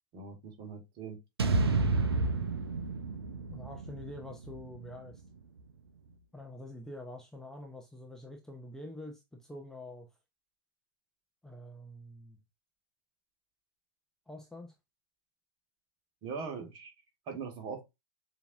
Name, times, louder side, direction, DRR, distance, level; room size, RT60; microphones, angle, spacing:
voice 1, 0.1-1.2 16.2-16.9 17.3-17.8, right 5 dB, 35° right, 1.6 m, -41 dB
sound 1, 1.4-5.6, right 3 dB, 75° right, 0.6 m, -31 dB
voice 2, 3.5-5.2 6.3-10.1 11.4-12.4 14.3-14.7, left 1 dB, 5° left, 0.8 m, -46 dB
6.8 x 2.9 x 2.5 m
figure-of-eight pair, 95°, 13 cm